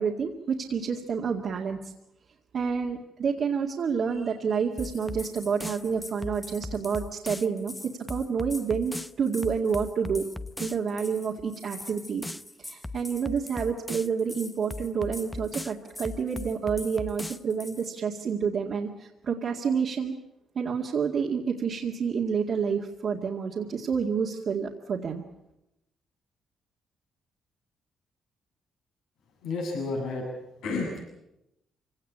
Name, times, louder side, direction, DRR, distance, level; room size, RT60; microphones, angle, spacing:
voice 1, 0.0-1.9 2.5-7.7 8.1-10.2 10.6-12.2 12.6-20.1 20.6-25.2, right 6 dB, 55° right, -1 dB, 2.1 m, -29 dB
sound 1, 4.8-17.9, left 2 dB, 10° left, 0.8 m, -39 dB
voice 2, 29.4-30.3 30.6-31.0, left 3 dB, 85° left, 0 dB, 7.7 m, -31 dB
25.0 x 17.5 x 8.7 m, 0.87 s
cardioid pair, 90°, 0 cm